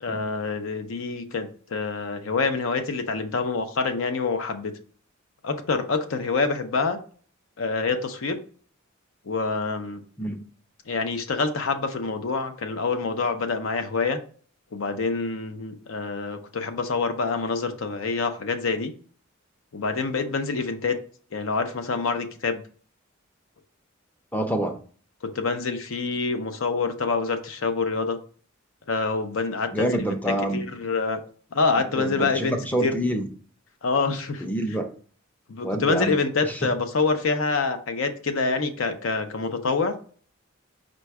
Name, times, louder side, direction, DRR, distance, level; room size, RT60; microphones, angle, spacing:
voice 1, 0.0-4.7 5.4-7.0 7.6-8.4 9.3-10.0 10.9-14.2 14.7-18.9 19.7-21.0 21.3-22.6 25.3-28.2 28.9-30.2 30.5-31.2 31.5-32.6 32.8-32.9 33.8-34.4 35.5-40.0, left 4 dB, 70° left, 7 dB, 0.6 m, -26 dB
voice 2, 24.3-24.8 29.7-30.7 31.9-33.3 34.4-34.9 35.6-36.7, right 1 dB, 10° left, 5 dB, 0.5 m, -27 dB
5.1 x 2.2 x 4.6 m, 0.43 s
head